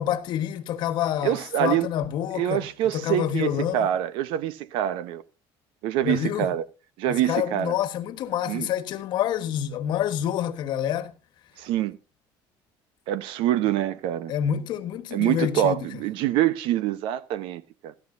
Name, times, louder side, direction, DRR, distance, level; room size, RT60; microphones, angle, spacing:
voice 1, 0.0-3.9 6.0-6.5 7.1-11.1 14.3-15.8, left 10 dB, 60° left, 1.4 m, -27 dB
voice 2, 1.2-1.9 2.3-5.2 5.8-6.7 7.0-7.7 8.5-8.7 11.6-12.0 13.1-14.3 15.1-17.9, right 12 dB, 80° right, 1.0 m, -25 dB
14.0 x 13.0 x 2.7 m
cardioid pair, 140°, 9 cm